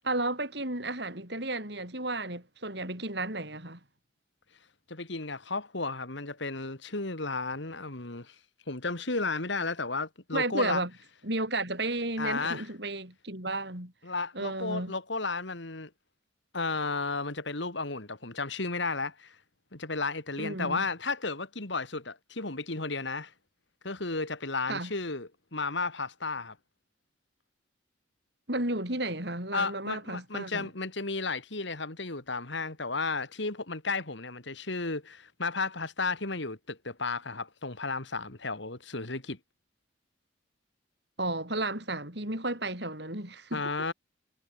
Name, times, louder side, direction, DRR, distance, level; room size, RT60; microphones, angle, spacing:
voice 1, 0.0-3.8 10.3-10.9 11.2-13.9 14.3-14.9 20.4-20.8 24.7-24.9 28.5-30.7 41.2-43.7, right 2 dB, 55° right, 7.6 m, -33 dB
voice 2, 4.9-8.3 8.7-10.8 12.2-12.7 14.0-15.9 16.5-19.4 19.7-23.3 23.8-26.6 29.5-39.4 43.5-43.9, left 3 dB, 65° left, 2.6 m, -33 dB
head